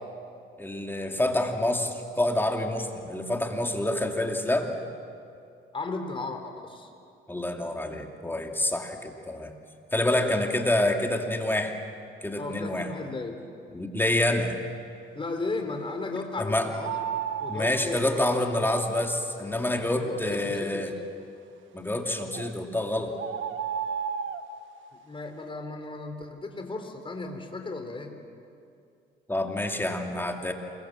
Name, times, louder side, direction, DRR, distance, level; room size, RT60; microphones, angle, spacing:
voice 1, 0.6-4.8 7.3-9.5 9.9-11.7 12.2-12.9 13.7-14.6 16.4-16.7 17.5-20.9 21.7-23.2 29.3-30.5, left 1 dB, 10° left, 2 dB, 2.7 m, -27 dB
voice 2, 5.7-6.9 10.1-10.3 12.4-13.4 15.1-17.0 17.4-18.2 20.0-20.9 25.0-28.1, left 3 dB, 25° left, 5 dB, 3.9 m, -35 dB
sound 1, 16.8-17.7 22.3-22.5 23.2-24.4, right 8 dB, 75° right, 1.2 m, -32 dB
28.0 x 22.5 x 7.5 m, 2.5 s
cardioid pair, 90°, 20 cm